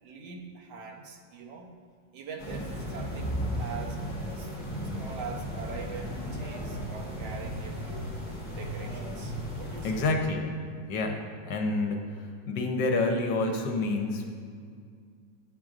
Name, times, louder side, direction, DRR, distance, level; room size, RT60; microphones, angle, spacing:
voice 1, 0.0-1.7 2.1-4.0 4.4-4.5 5.0-8.1 8.6-10.1, right 4 dB, 80° right, 1 dB, 1.5 m, -43 dB
sound 1, 2.4-10.1, equal, 25° left, 1.9 m, -35 dB
voice 2, 9.8-10.5 10.9-11.2 11.4-14.2, left 3 dB, 70° left, 3 dB, 1.3 m, -28 dB
10.5 x 7.5 x 2.4 m, 2.1 s
omnidirectional pair, 2.0 m